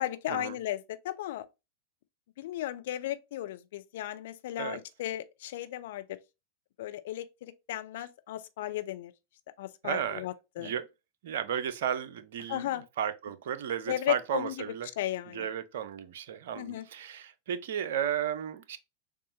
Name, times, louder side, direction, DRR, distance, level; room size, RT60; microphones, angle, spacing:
voice 1, 0.0-1.5 2.4-6.0 6.8-9.1 9.6-10.7 12.5-12.8 13.9-14.6 15.0-15.5 16.5-16.9, left 14 dB, 55° left, 0.5 m, -35 dB
voice 2, 9.8-10.2 10.6-10.9 11.2-12.6 13.0-14.9 15.3-18.8, right 9 dB, 55° right, 0.5 m, -34 dB
6.6 x 2.4 x 2.8 m
figure-of-eight pair, 90°, 0 cm